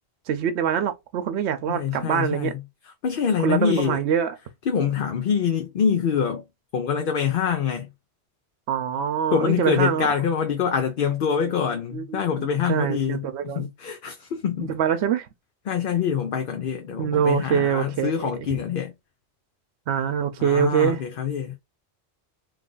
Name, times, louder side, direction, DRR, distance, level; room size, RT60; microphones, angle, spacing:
voice 1, 0.3-2.5 3.4-4.4 8.7-10.1 11.5-11.6 11.9-13.7 14.6-15.3 17.0-18.6 19.9-21.0, right 8 dB, 80° right, 0.9 m, -24 dB
voice 2, 1.7-2.6 3.0-4.0 4.7-6.4 6.7-7.9 9.3-14.7 15.7-18.9 20.4-21.6, left 7 dB, 60° left, 0.7 m, -25 dB
3.2 x 2.4 x 3.7 m
omnidirectional pair, 1.1 m